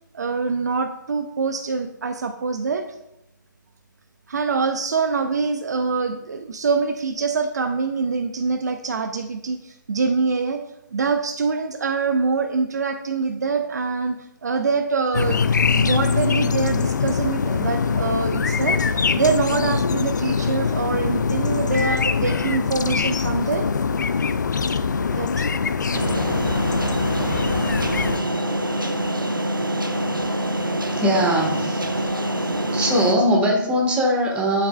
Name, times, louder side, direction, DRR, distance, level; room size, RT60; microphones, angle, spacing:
voice 1, 0.1-2.8 4.3-10.6 10.9-15.4 15.7-18.8 19.2-23.7 24.9-25.5, right 4 dB, 55° right, 8 dB, 0.6 m, -24 dB
sound 1, 15.1-28.2, left 5 dB, 60° left, 0.5 m, -23 dB
sound 2, 25.9-33.1, right 1 dB, 85° right, 1.0 m, -25 dB
voice 2, 31.0-32.1 32.7-34.7, equal, 10° right, 0 dB, 1.5 m, -21 dB
10.5 x 8.3 x 2.3 m, 0.87 s
figure-of-eight pair, 135°, 11 cm